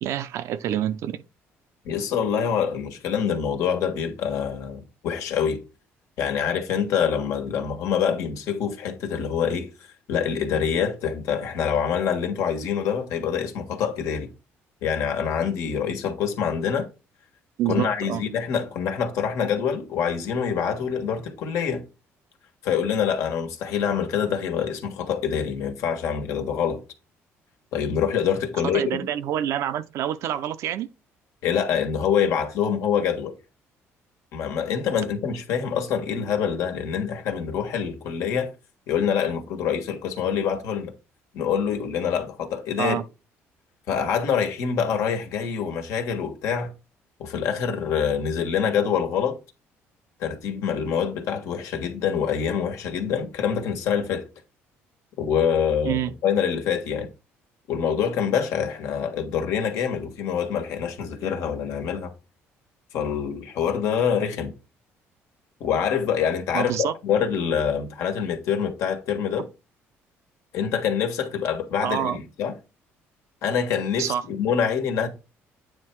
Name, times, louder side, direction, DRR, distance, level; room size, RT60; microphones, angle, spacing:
voice 1, 0.0-1.2 17.6-18.2 28.6-30.9 42.8-43.0 55.8-56.1 66.5-66.9 71.8-72.2 74.0-74.2, right 11 dB, 70° right, 0.6 m, -27 dB
voice 2, 1.8-5.6 6.2-9.7 10.1-14.3 14.8-16.9 17.6-21.8 22.6-26.8 27.7-29.0 31.4-33.4 34.3-38.5 38.9-40.9 41.3-43.0 43.9-46.7 47.2-49.4 50.2-54.3 55.2-57.1 57.7-62.1 62.9-64.5 65.6-69.5 70.5-72.5 73.4-75.1, left 7 dB, 75° left, 1.5 m, -25 dB
8.9 x 3.5 x 4.5 m
cardioid pair, 115°, 5 cm